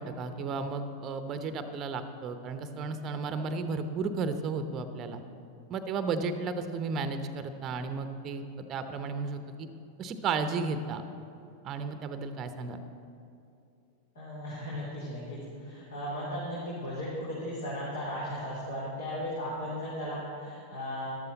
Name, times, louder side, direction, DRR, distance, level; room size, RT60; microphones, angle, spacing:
voice 1, 0.0-5.2 5.7-9.7 10.0-11.0 11.6-12.8, right 4 dB, 30° right, 9 dB, 0.8 m, -33 dB
voice 2, 14.1-21.1, equal, 65° left, -7 dB, 3.0 m, -36 dB
13.5 x 12.0 x 4.0 m, 2.7 s
figure-of-eight pair, 90°, 0 cm